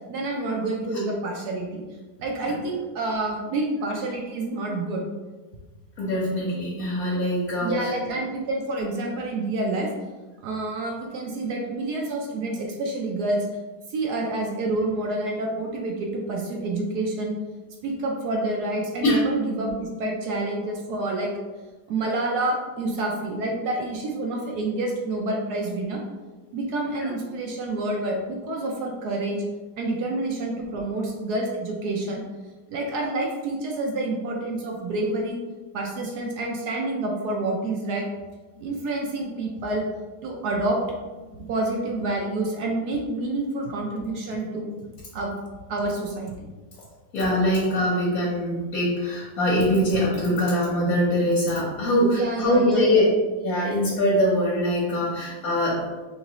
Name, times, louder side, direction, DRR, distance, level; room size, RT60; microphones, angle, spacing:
voice 1, 0.1-1.8 2.2-5.0 7.6-9.9 10.4-13.5 13.9-17.3 17.8-21.3 21.9-26.0 26.5-29.4 29.8-32.2 32.7-35.4 35.7-38.1 38.6-39.8 40.2-40.8 41.5-44.7 45.1-45.3 45.7-46.5 52.1-53.0, right 2 dB, 70° right, -1 dB, 1.1 m, -28 dB
voice 2, 6.0-7.7 19.0-19.2 27.0-27.1 47.1-53.0 53.4-55.7, left 1 dB, 60° left, -6 dB, 1.3 m, -23 dB
3.9 x 3.1 x 2.9 m, 1.3 s
omnidirectional pair, 1.9 m